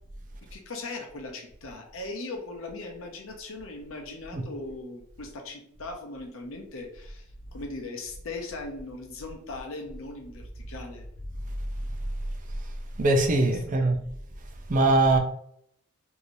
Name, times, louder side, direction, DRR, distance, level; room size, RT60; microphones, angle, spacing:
voice 1, 0.5-7.2 7.5-11.0 13.8-13.9, left 2 dB, 75° left, 2 dB, 0.7 m, -39 dB
voice 2, 13.0-14.0 14.7-15.2, right 2 dB, 40° right, 4 dB, 0.4 m, -21 dB
3.1 x 2.7 x 2.6 m, 0.68 s
head